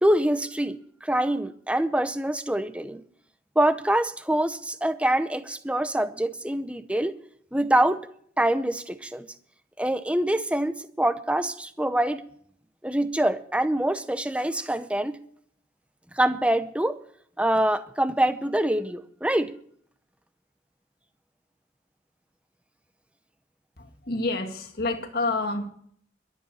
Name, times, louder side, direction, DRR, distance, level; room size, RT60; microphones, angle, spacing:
voice 1, 0.0-3.0 3.6-7.1 7.5-8.0 8.4-9.3 9.8-12.2 12.8-15.2 16.1-17.0 17.4-19.5, right 1 dB, 5° right, 12 dB, 0.7 m, -25 dB
voice 2, 23.8-25.7, left 2 dB, 55° left, 6 dB, 1.8 m, -28 dB
12.5 x 8.1 x 8.8 m, 0.62 s
head